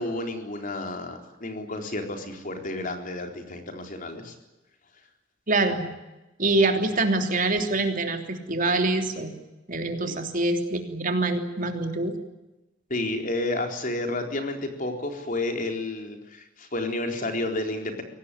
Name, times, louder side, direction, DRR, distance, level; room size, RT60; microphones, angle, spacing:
voice 1, 0.0-4.3 10.0-10.1 12.9-18.0, left 2 dB, 45° left, 4 dB, 4.1 m, -31 dB
voice 2, 5.5-5.9 6.4-9.3 9.7-12.1, right 2 dB, 45° right, 5 dB, 3.2 m, -25 dB
24.0 x 18.5 x 10.0 m, 1.0 s
head